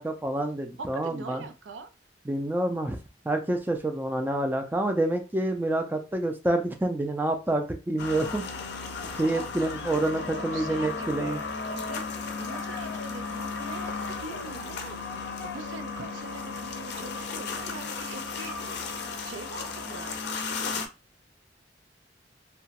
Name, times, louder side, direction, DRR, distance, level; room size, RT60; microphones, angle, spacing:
voice 1, 0.0-1.5 2.3-3.0 3.3-8.4 9.2-11.4, right 1 dB, 10° right, 4 dB, 0.3 m, -28 dB
voice 2, 0.8-1.9 9.3-13.9 14.2-15.0 15.4-18.5 19.2-20.3, right 3 dB, 85° right, 6 dB, 0.5 m, -43 dB
sound 1, 8.0-20.9, left 4 dB, 65° left, 0.5 m, -35 dB
2.9 x 2.2 x 2.8 m, 0.30 s
head